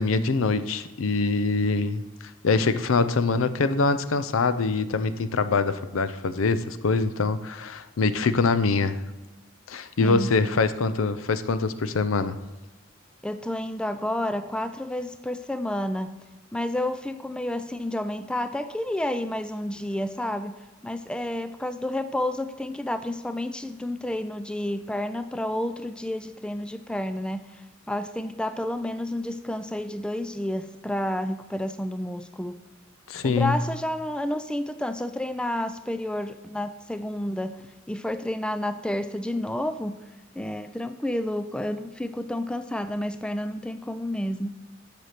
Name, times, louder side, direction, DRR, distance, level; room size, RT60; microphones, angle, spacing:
voice 1, 0.0-2.0 2.4-9.0 9.7-12.4 33.1-33.6, left 4 dB, 85° left, 13 dB, 0.6 m, -24 dB
voice 2, 10.0-10.3 13.2-16.1 16.5-20.6 20.8-27.6 27.9-32.6 33.2-37.5 37.9-40.0 40.4-44.5, left 1 dB, 5° left, 11 dB, 0.3 m, -30 dB
8.0 x 6.7 x 5.8 m, 1.1 s
head